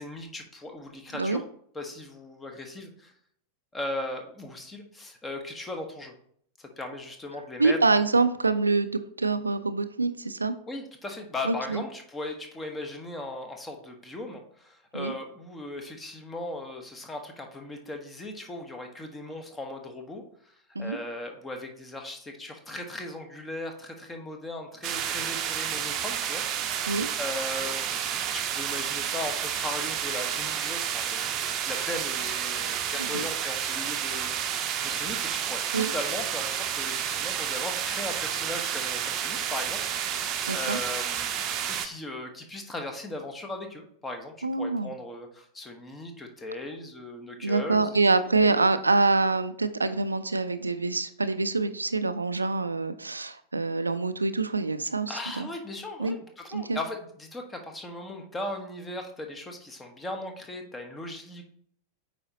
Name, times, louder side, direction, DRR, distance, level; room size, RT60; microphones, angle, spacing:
voice 1, 0.0-1.4 1.7-3.1 3.7-6.1 6.6-7.8 10.7-26.4 27.2-39.8 40.1-48.0 48.3-48.7 55.1-61.5, left 2 dB, 15° left, 4 dB, 1.3 m, -38 dB
voice 2, 7.6-10.6 11.4-11.8 14.9-15.1 20.8-21.0 26.9-27.1 33.1-33.2 35.7-35.9 40.5-40.8 44.4-44.9 47.4-55.5 56.0-56.1 56.5-56.8, right 3 dB, 80° right, 12 dB, 0.4 m, -25 dB
sound 1, 24.8-41.9, right 9 dB, 35° right, 0.7 m, -30 dB
8.4 x 4.8 x 2.9 m, 0.64 s
figure-of-eight pair, 90°, 0 cm